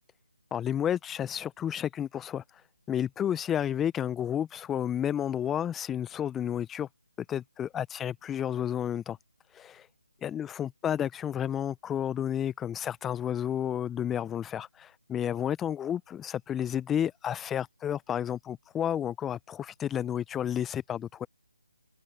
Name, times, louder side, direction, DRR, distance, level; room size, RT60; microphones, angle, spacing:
voice 1, 0.5-2.4 2.9-6.9 7.3-9.2 9.6-9.8 10.2-21.3, left 9 dB, 10° left, 0.7 m, -31 dB
open air
figure-of-eight pair, 155°, 0 cm